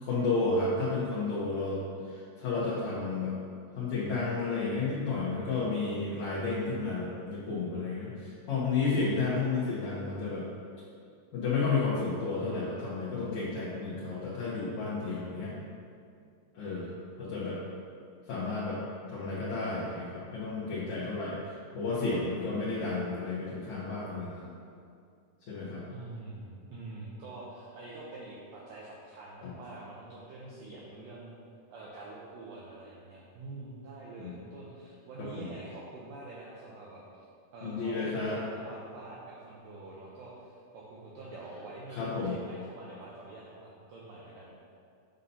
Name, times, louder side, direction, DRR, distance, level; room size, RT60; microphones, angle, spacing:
voice 1, 0.0-3.3 3.7-10.4 11.3-15.6 16.5-16.9 17.2-17.6 18.3-18.8 19.1-21.4 21.7-24.5 25.5-25.8 34.2-34.4 35.2-35.5 37.6-38.4 41.9-42.4, left 3 dB, 80° left, -9 dB, 1.6 m, -32 dB
voice 2, 25.9-31.3 31.7-37.2 37.5-44.6, right 2 dB, 90° right, -5 dB, 1.9 m, -46 dB
8.9 x 5.5 x 2.7 m, 2.4 s
omnidirectional pair, 4.9 m